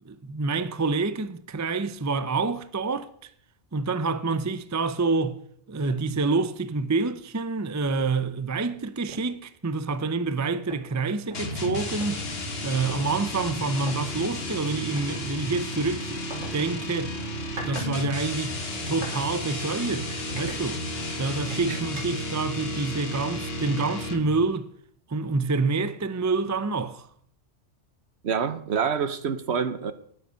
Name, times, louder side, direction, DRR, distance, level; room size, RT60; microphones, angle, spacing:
voice 1, 0.1-3.1 3.7-5.4 5.7-12.3 12.6-17.2 17.7-18.5 18.9-20.8 21.2-24.7 25.1-27.1, right 3 dB, 20° right, 0.4 m, -27 dB
sound 1, 7.9-8.1 8.5-8.7 9.1-9.4 10.3-10.4 10.7-12.1 12.9-13.0 13.8-14.0 15.0-15.1 16.3-16.5 17.2-17.9 18.2-19.2 19.6-19.8 20.3-21.1 21.5-22.3, right 1 dB, 85° right, 4.4 m, -41 dB
sound 2, 11.3-24.4, left 1 dB, 50° left, 2.0 m, -33 dB
voice 2, 28.2-29.9, right 6 dB, 60° right, 1.2 m, -27 dB
20.0 x 7.7 x 5.7 m
omnidirectional pair, 1.3 m